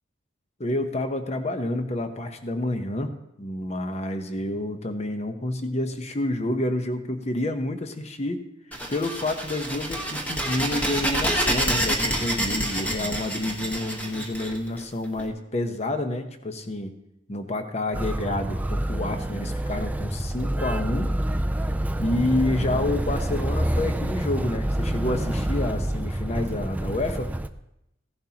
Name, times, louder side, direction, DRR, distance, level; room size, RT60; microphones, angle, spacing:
voice 1, 0.6-8.4 8.9-16.9 17.3-21.1 22.0-27.3, left 1 dB, 35° left, 7 dB, 0.9 m, -29 dB
sound 1, 8.7-15.2, right 1 dB, 10° left, 1.2 m, -27 dB
Motor vehicle (road), 17.9-27.5, right 1 dB, 10° right, 0.3 m, -27 dB
16.0 x 11.0 x 2.9 m, 0.84 s
head